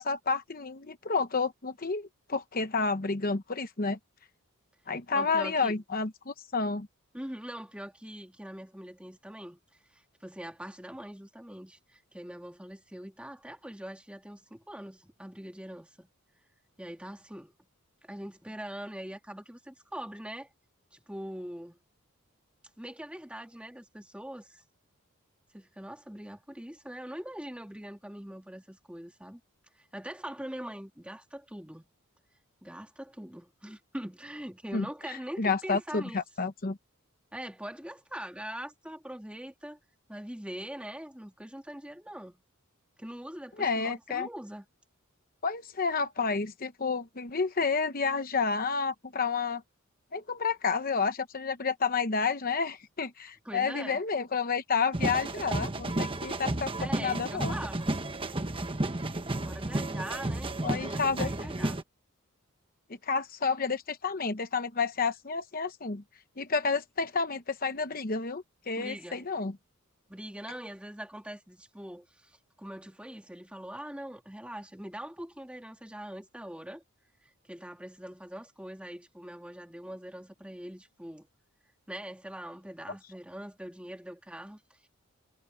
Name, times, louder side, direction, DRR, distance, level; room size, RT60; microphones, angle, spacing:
voice 1, 0.0-4.0 4.9-6.9 34.7-36.8 43.6-44.3 45.4-49.6 50.1-57.5 60.6-61.5 63.0-66.0 66.4-69.5, left 4 dB, 40° left, 0.9 m, -30 dB
voice 2, 5.1-5.8 7.1-9.6 9.9-16.1 16.8-17.5 18.0-20.5 20.9-21.8 22.8-24.6 25.5-29.4 29.7-31.8 32.6-36.2 37.3-39.8 40.1-42.4 43.0-44.6 53.4-54.0 56.8-57.9 59.4-61.8 68.8-69.3 70.1-76.8 77.5-81.3 81.9-84.9, right 1 dB, 5° right, 1.8 m, -42 dB
sound 1, 54.9-61.8, right 2 dB, 25° right, 1.2 m, -32 dB
head